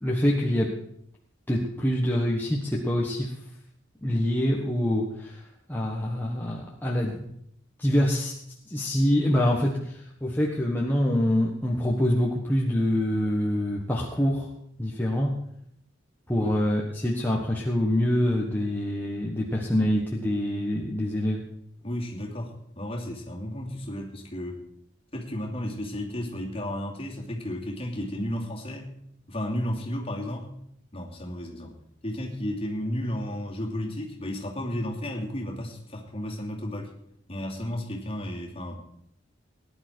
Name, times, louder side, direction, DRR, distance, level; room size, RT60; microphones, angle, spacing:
voice 1, 0.0-0.8 1.5-3.4 4.0-7.3 7.8-8.3 8.7-14.5 14.8-15.4 16.3-21.4, left 1 dB, 10° left, -3 dB, 1.4 m, -25 dB
voice 2, 21.8-24.6 25.1-28.9 29.3-30.5 30.9-31.7 32.0-36.9 37.3-38.8, left 1 dB, 30° left, -1 dB, 2.8 m, -33 dB
19.0 x 10.5 x 4.6 m, 0.71 s
head